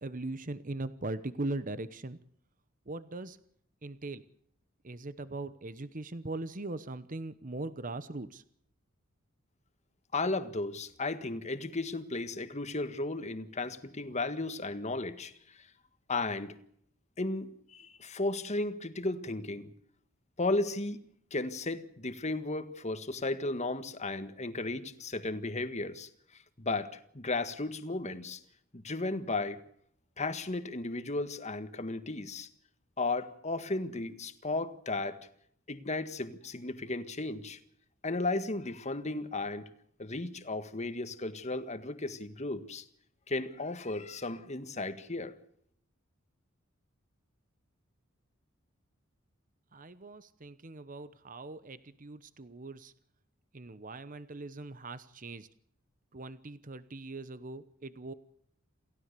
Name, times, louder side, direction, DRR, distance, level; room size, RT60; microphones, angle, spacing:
voice 1, 0.0-2.2 2.9-3.4 3.8-4.2 4.8-8.4 49.7-52.9 53.5-55.5 56.1-58.1, right 2 dB, 40° right, 1.0 m, -40 dB
voice 2, 10.1-15.3 16.1-16.6 17.2-19.7 20.4-21.0 21.3-26.1 26.6-28.4 28.7-29.6 30.2-32.5 33.0-35.2 35.7-37.6 38.0-39.7 40.0-42.8 43.3-45.3, left 2 dB, 35° left, 1.6 m, -34 dB
28.5 x 16.0 x 6.8 m
head